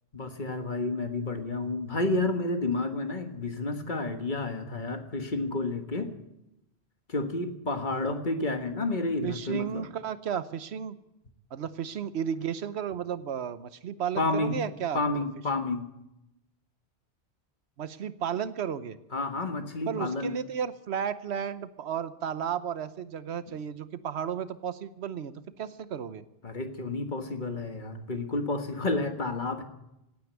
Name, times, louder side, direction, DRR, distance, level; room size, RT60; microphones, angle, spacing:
voice 1, 0.1-6.2 7.1-9.8 14.2-14.6 14.9-15.9 19.1-20.3 26.4-29.6, left 2 dB, 50° left, 7 dB, 1.7 m, -30 dB
voice 2, 9.2-10.9 11.5-15.0 17.8-19.0 19.9-26.2, right 8 dB, 85° right, 14 dB, 1.1 m, -33 dB
17.0 x 9.6 x 8.2 m, 0.89 s
omnidirectional pair, 1.1 m